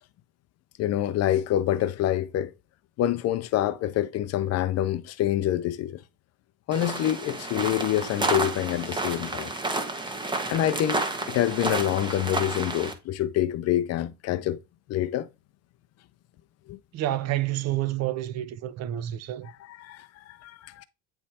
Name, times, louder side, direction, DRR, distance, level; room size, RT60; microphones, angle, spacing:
voice 1, 0.8-2.5 3.0-6.0 6.7-9.5 10.5-11.0 11.3-14.6 14.9-15.3 16.7-16.8 19.7-20.8, left 12 dB, 45° left, 0.5 m, -26 dB
sound 1, 6.7-12.9, right 2 dB, 10° right, 1.0 m, -30 dB
voice 2, 16.9-19.5, right 14 dB, 45° right, 0.6 m, -29 dB
8.9 x 3.2 x 4.2 m
cardioid pair, 150°, 36 cm